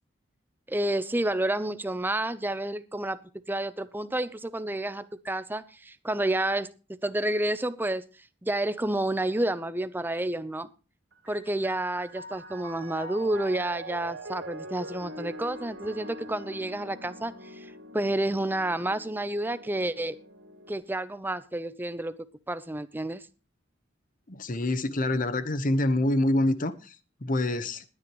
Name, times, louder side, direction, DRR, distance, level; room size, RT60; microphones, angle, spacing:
voice 1, 0.7-3.2 3.5-6.7 7.0-8.0 8.4-10.7 11.3-20.2 20.7-23.3, right 1 dB, 10° right, 0.7 m, -30 dB
Piano, 11.1-20.7, right 1 dB, 90° right, 2.5 m, -43 dB
voice 2, 24.3-26.7 27.2-27.8, left 1 dB, 45° left, 1.0 m, -26 dB
20.5 x 9.7 x 3.0 m
head